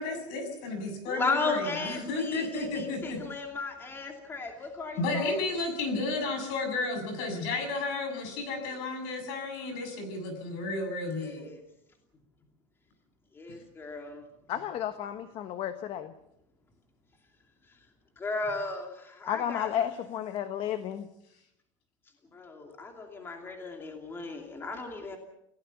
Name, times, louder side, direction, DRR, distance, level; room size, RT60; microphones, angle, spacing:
voice 1, 0.0-3.2 4.9-11.5, left 3 dB, 55° left, 7 dB, 7.3 m, -32 dB
voice 2, 1.1-5.4 11.1-11.6 13.3-14.2 18.2-19.7 22.3-25.2, left 3 dB, 15° left, 3 dB, 2.7 m, -35 dB
voice 3, 14.5-16.1 19.3-21.1, left 10 dB, 35° left, 10 dB, 1.2 m, -32 dB
29.0 x 17.0 x 7.1 m, 0.80 s
supercardioid pair, 160°, 16 cm